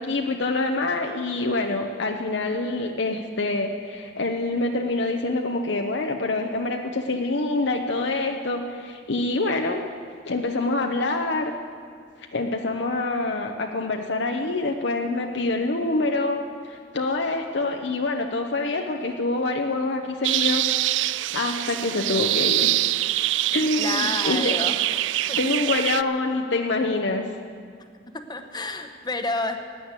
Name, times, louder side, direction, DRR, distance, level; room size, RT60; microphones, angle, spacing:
voice 1, 0.0-9.9 10.2-11.5 12.3-20.7 21.0-22.7 23.5-24.5 25.4-27.2, left 2 dB, 70° left, 3 dB, 0.9 m, -26 dB
sound 1, 20.2-26.0, right 15 dB, 75° right, 0.3 m, -24 dB
voice 2, 23.8-24.9 25.3-25.4 28.1-29.6, left 2 dB, 25° left, 7 dB, 1.0 m, -30 dB
16.5 x 9.9 x 8.3 m, 2.2 s
head